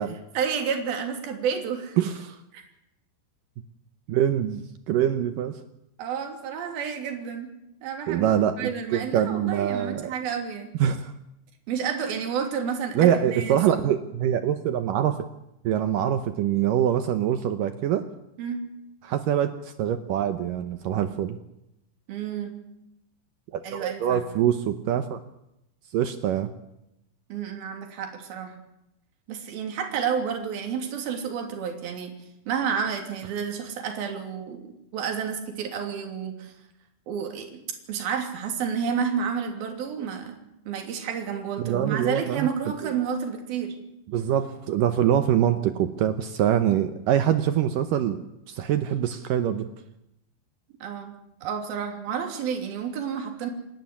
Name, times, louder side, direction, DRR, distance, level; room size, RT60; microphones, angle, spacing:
voice 1, 0.3-2.0 2.5-2.6 6.0-7.5 7.8-8.3 8.6-10.7 11.7-13.9 18.4-18.6 22.1-22.6 23.6-24.3 27.3-28.6 29.3-32.1 32.5-34.6 34.9-36.5 37.1-37.6 37.9-40.4 40.7-43.8 50.8-51.2 51.4-53.5, right 7 dB, 55° right, 4 dB, 4.5 m, -30 dB
voice 2, 2.0-2.4 4.1-5.6 8.1-10.1 10.8-11.1 13.0-15.3 15.6-18.1 19.0-21.4 23.5-25.2 25.9-26.5 41.6-42.5 42.8-42.9 44.1-49.7, right 10 dB, 85° right, 9 dB, 1.9 m, -24 dB
28.5 x 12.0 x 9.7 m, 0.85 s
omnidirectional pair, 5.3 m